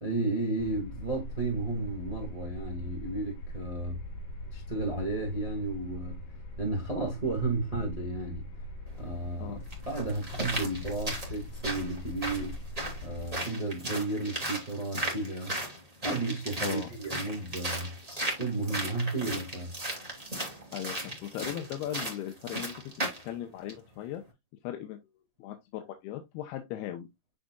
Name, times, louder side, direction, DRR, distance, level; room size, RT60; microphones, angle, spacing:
voice 1, 0.0-4.0 4.5-6.2 6.6-8.5 9.0-9.6 9.8-12.6 13.0-15.5 16.0-17.9 18.4-19.7, right 2 dB, 75° right, 0.3 m, -33 dB
sound 1, 0.6-13.3, left 1 dB, 50° left, 3.2 m, -42 dB
sound 2, 8.9-9.0 9.7-23.3 23.7-23.8, right 1 dB, 15° right, 1.3 m, -36 dB
voice 2, 20.7-22.8 23.2-24.2 24.6-25.0 25.4-27.1, left 11 dB, 80° left, 2.7 m, -38 dB
9.9 x 4.1 x 2.3 m
omnidirectional pair, 4.7 m